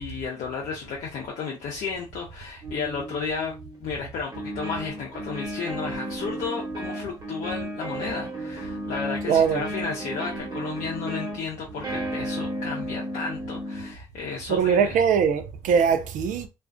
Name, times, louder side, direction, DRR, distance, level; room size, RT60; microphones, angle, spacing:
voice 1, 0.0-3.5 3.8-15.0, left 5 dB, 65° left, 0.6 m, -33 dB
sound 1, 2.6-3.8 4.3-13.9, right 1 dB, 30° right, 1.2 m, -34 dB
voice 2, 9.3-9.7 14.5-16.5, right 7 dB, 65° right, 0.4 m, -21 dB
2.4 x 2.3 x 2.2 m
hypercardioid pair, 45°, 15 cm